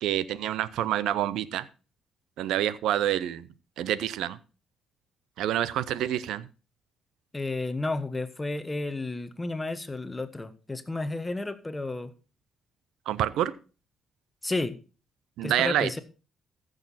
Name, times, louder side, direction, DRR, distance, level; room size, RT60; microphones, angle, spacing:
voice 1, 0.0-1.6 2.4-3.5 3.8-4.4 5.4-6.5 13.1-13.5 15.4-15.9, right 12 dB, 85° right, 17 dB, 0.6 m, -27 dB
voice 2, 7.3-12.1 14.4-14.8 15.4-16.0, left 2 dB, 15° left, 11 dB, 1.2 m, -32 dB
14.5 x 6.5 x 4.1 m, 0.34 s
cardioid pair, 90°, 0 cm